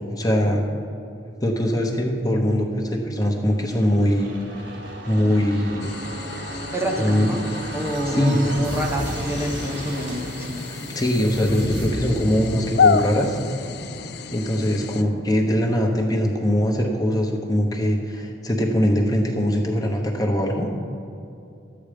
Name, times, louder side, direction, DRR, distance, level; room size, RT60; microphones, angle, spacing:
voice 1, 0.2-0.6 1.4-4.3 5.0-5.9 7.0-7.4 8.1-8.5 10.7-13.4 14.3-20.7, equal, 20° left, 1 dB, 1.0 m, -22 dB
sound 1, 3.5-17.0 17.3-17.4, right 1 dB, 75° right, 1.6 m, -35 dB
sound 2, 5.8-15.0, left 5 dB, 60° left, 0.4 m, -29 dB
voice 2, 6.7-7.4 7.7-10.6, equal, 15° right, 0 dB, 0.9 m, -27 dB
12.0 x 8.8 x 5.1 m, 2.6 s
head